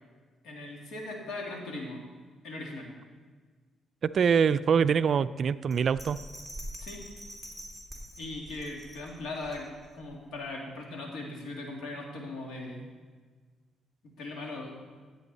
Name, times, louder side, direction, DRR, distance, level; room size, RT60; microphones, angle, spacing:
voice 1, 0.4-2.0 2.4-2.9 6.8-7.0 8.2-9.7 9.9-12.9 14.2-14.7, left 2 dB, 80° left, 0 dB, 2.3 m, -39 dB
voice 2, 4.0-6.2, right 6 dB, 55° right, 14 dB, 0.3 m, -24 dB
Bell, 5.7-10.0 10.5-10.6, right 1 dB, 10° left, 2.7 m, -44 dB
15.0 x 8.2 x 4.1 m, 1.5 s
cardioid pair, 90°, 0 cm